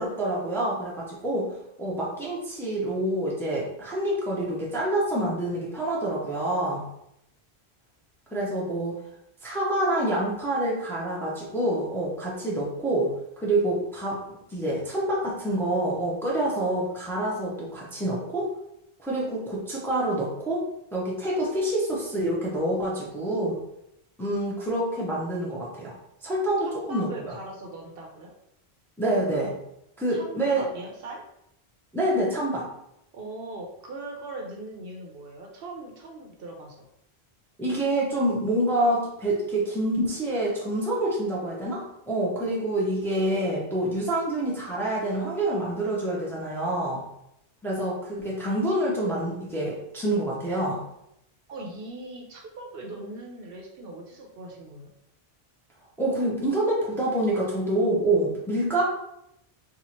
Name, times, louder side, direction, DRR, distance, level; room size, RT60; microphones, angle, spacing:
voice 1, 0.0-1.5 1.8-6.8 8.3-9.0 9.4-18.5 19.0-20.6 20.9-23.6 24.2-25.9 26.2-27.4 29.0-29.5 30.0-30.6 31.9-32.7 37.6-47.0 47.6-50.8 56.0-58.8, right 1 dB, 5° left, -5 dB, 0.6 m, -27 dB
voice 2, 26.6-28.3 30.1-31.2 33.1-36.9 51.5-54.9, right 2 dB, 65° right, 1 dB, 0.8 m, -40 dB
2.8 x 2.4 x 4.2 m, 0.80 s
omnidirectional pair, 1.1 m